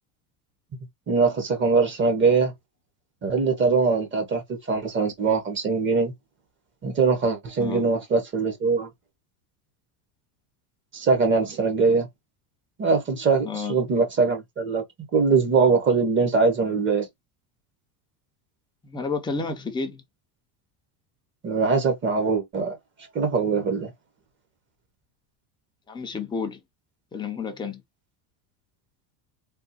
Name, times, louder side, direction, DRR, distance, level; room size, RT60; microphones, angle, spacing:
voice 1, 1.1-2.5 3.2-4.4 4.7-6.1 6.8-8.9 10.9-12.1 12.8-14.8 15.1-17.1 21.4-22.7 23.1-23.9, right 4 dB, 25° right, 0.9 m, -22 dB
voice 2, 13.4-13.8 18.8-20.0 25.9-26.6 27.1-27.8, left 4 dB, 10° left, 0.5 m, -30 dB
3.5 x 2.4 x 2.8 m
cardioid pair, 145°, 46 cm